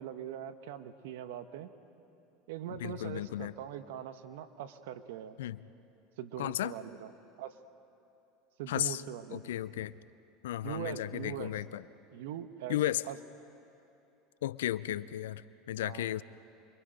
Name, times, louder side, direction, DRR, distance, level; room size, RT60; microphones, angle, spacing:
voice 1, 0.0-1.7 2.5-5.4 6.2-7.1 7.4-7.6 8.6-9.5 10.6-11.5 12.1-12.8 13.0-13.2 15.8-16.2, right 10 dB, 75° right, 10 dB, 1.2 m, -42 dB
voice 2, 2.8-3.5 5.4-5.6 6.4-6.7 8.7-9.0 9.3-9.9 10.4-11.8 12.7-13.0 14.4-15.4 15.7-16.2, left 13 dB, 80° left, 17 dB, 0.5 m, -34 dB
28.5 x 23.5 x 5.2 m, 2.8 s
hypercardioid pair, 90°, 0 cm